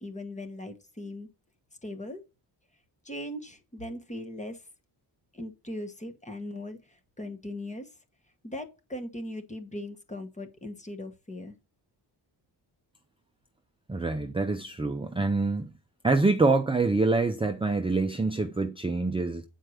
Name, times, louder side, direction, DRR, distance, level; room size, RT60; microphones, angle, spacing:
voice 1, 0.0-1.3 1.8-2.2 3.0-4.6 5.3-7.9 8.4-11.6, left 1 dB, 15° left, 1.2 m, -39 dB
voice 2, 13.9-15.7 16.0-19.4, right 3 dB, 15° right, 0.5 m, -26 dB
9.1 x 4.6 x 6.4 m
wide cardioid pair, 150°, 44 cm